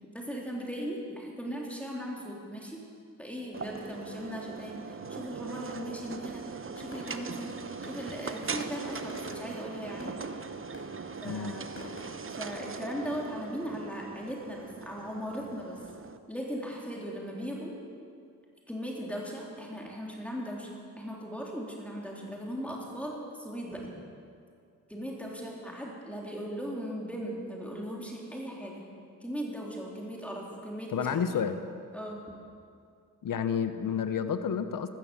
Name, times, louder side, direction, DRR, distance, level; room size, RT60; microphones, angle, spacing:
voice 1, 0.1-2.8 3.2-7.5 7.8-10.1 11.2-11.7 12.3-15.8 16.3-17.8 18.7-20.7 21.0-23.9 24.9-28.8 29.2-31.2 31.9-32.2, equal, 5° left, -3 dB, 3.6 m, -38 dB
sound 1, 3.5-16.2, right 5 dB, 35° right, 0.9 m, -40 dB
sound 2, 6.8-12.6, left 1 dB, 35° left, 5.0 m, -47 dB
voice 2, 11.2-11.6 30.9-31.6 33.2-34.9, left 7 dB, 65° left, 10 dB, 0.9 m, -30 dB
14.0 x 13.5 x 7.1 m, 2.3 s
cardioid pair, 55°, 36 cm